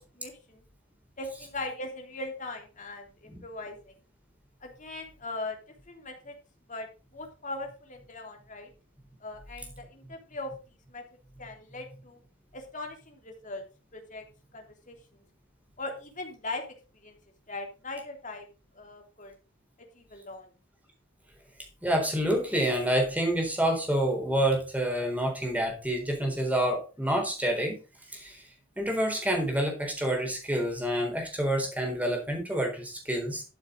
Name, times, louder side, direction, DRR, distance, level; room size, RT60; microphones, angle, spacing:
voice 1, 0.2-0.6 1.2-3.9 4.6-5.6 5.9-6.3 6.7-6.9 7.1-8.7 9.2-10.5 10.9-11.0 11.4-12.2 12.5-13.6 13.9-14.2 14.5-15.0 15.8-16.6 17.0-17.2 17.5-18.5 18.7-19.3 19.9-20.5, left 2 dB, 35° left, 3 dB, 3.1 m, -39 dB
voice 2, 21.8-27.8 28.1-28.4 28.8-33.4, right 1 dB, 5° right, 2 dB, 4.1 m, -28 dB
13.5 x 7.3 x 3.8 m, 0.32 s
head